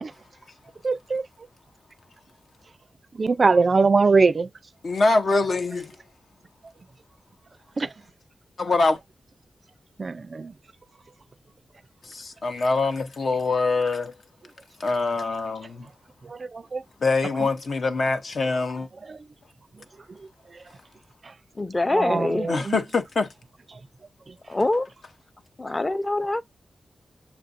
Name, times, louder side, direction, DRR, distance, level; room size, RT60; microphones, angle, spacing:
voice 1, 0.8-1.2 3.2-4.5 7.8-7.9 10.0-10.5 16.3-16.8 19.1-19.2 21.9-22.8, right 4 dB, 50° right, 0.4 m, -22 dB
voice 2, 4.8-5.9 8.6-9.0 12.0-14.1 14.8-15.9 17.0-18.9 22.5-23.3, left 3 dB, 65° left, 0.8 m, -24 dB
voice 3, 21.6-22.5 24.5-24.9 25.6-26.4, left 2 dB, 25° left, 0.6 m, -24 dB
7.0 x 2.5 x 2.5 m
wide cardioid pair, 85°, 0 cm